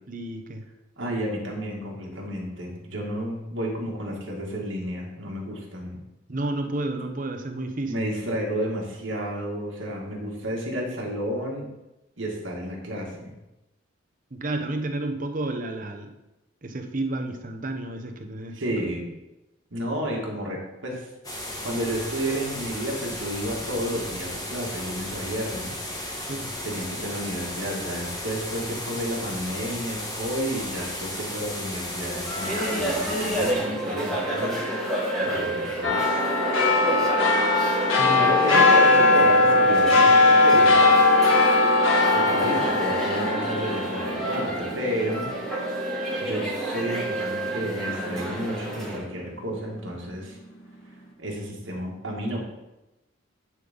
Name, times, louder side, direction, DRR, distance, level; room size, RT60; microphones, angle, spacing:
voice 1, 0.1-0.7 6.3-8.1 14.3-16.1 16.6-18.6 26.3-26.6 38.0-38.3, right 2 dB, 40° right, 5 dB, 0.8 m, -31 dB
voice 2, 1.0-6.0 7.9-11.7 12.2-13.3 18.5-19.1 19.7-21.1 21.6-26.2 26.6-36.0 37.8-40.9 42.1-45.3 46.2-50.4 51.2-52.4, equal, 70° right, -2 dB, 2.0 m, -31 dB
sound 1, 21.2-33.5, left 1 dB, 20° left, 1.1 m, -34 dB
sound 2, 32.3-49.0, right 1 dB, ahead, 1.8 m, -30 dB
sound 3, 35.8-46.6 47.0-47.1, left 2 dB, 90° left, 1.5 m, -20 dB
10.0 x 4.0 x 5.3 m, 0.97 s
head